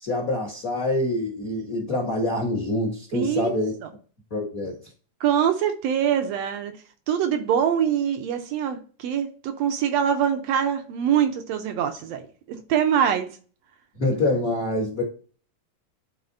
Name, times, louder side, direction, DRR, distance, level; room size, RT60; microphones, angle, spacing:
voice 1, 0.0-3.7 4.3-4.8 14.0-15.0, left 2 dB, 45° left, -1 dB, 1.1 m, -25 dB
voice 2, 3.1-3.9 5.2-6.7 7.1-12.2 12.5-13.3, right 9 dB, 70° right, 6 dB, 1.7 m, -24 dB
11.5 x 4.2 x 2.6 m, 0.41 s
omnidirectional pair, 3.4 m